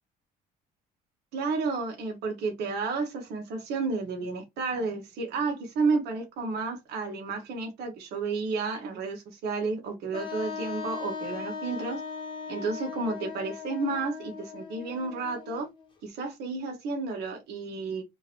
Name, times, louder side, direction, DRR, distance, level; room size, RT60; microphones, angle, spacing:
voice 1, 1.3-12.0 12.5-15.7 16.0-18.0, right 4 dB, 75° right, 1.0 m, -31 dB
Wind instrument woodwind instrument, 10.1-15.9, left 5 dB, 30° left, 1.1 m, -38 dB
2.9 x 2.5 x 2.8 m
cardioid pair, 110°, 17 cm